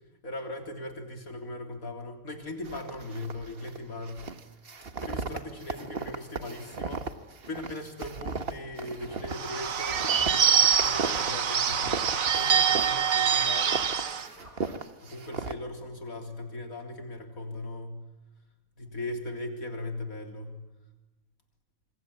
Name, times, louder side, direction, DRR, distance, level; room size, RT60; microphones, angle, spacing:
voice 1, 0.2-4.3 4.9-7.0 7.4-13.8 15.0-18.0 18.8-20.6, left 1 dB, 80° left, 4 dB, 4.0 m, -39 dB
sound 1, 2.6-3.8 4.0-13.1 13.3-15.5, right 4 dB, 45° right, 1.5 m, -36 dB
sound 2, 8.7-14.7, equal, 35° left, 7.3 m, -52 dB
Bird / Bell, 9.3-14.3, right 7 dB, 75° right, 1.7 m, -25 dB
27.0 x 23.0 x 8.7 m, 1.1 s
omnidirectional pair, 1.5 m